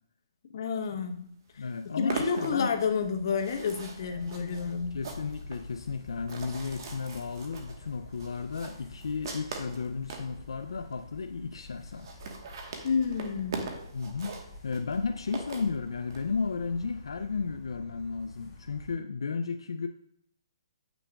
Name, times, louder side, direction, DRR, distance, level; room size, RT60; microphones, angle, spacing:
voice 1, 0.5-1.6 2.0-5.0 12.8-13.7, left 5 dB, 55° left, 5 dB, 0.8 m, -30 dB
sound 1, 1.1-1.2 1.5-10.3 10.9-11.0 11.2-11.3 11.5-11.6 11.9-16.2, right 4 dB, 55° right, 1.2 m, -41 dB
voice 2, 1.6-2.7 4.9-12.2 13.9-19.9, left 5 dB, 85° left, 7 dB, 0.4 m, -34 dB
sound 2, 2.5-18.9, left 2 dB, 15° left, 2.9 m, -48 dB
8.8 x 6.1 x 2.3 m, 0.70 s
hypercardioid pair, 155°, 3 cm